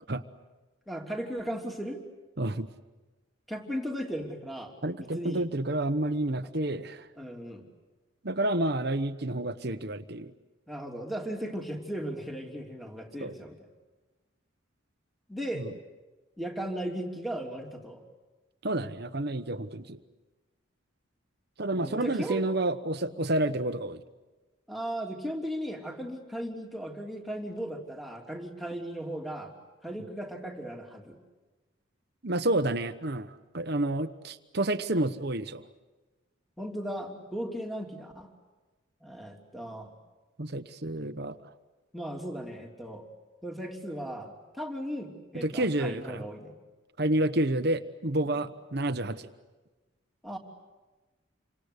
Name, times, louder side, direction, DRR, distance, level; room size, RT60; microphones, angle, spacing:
voice 1, 0.9-2.0 3.5-4.7 5.0-5.4 7.2-7.7 10.7-13.6 15.3-15.7 16.4-18.0 21.8-22.4 23.0-23.2 24.7-29.5 29.8-31.2 36.6-38.3 39.0-39.9 41.9-43.1 43.4-46.5 48.3-48.4 50.2-50.4, equal, ahead, 1 dB, 3.1 m, -36 dB
voice 2, 4.8-7.1 8.2-10.3 13.2-13.3 15.6-15.7 18.6-20.0 21.6-24.0 32.2-35.6 40.4-41.4 45.3-46.2 47.0-49.3, right 1 dB, 50° right, 9 dB, 1.1 m, -29 dB
28.5 x 25.5 x 8.2 m, 1.2 s
head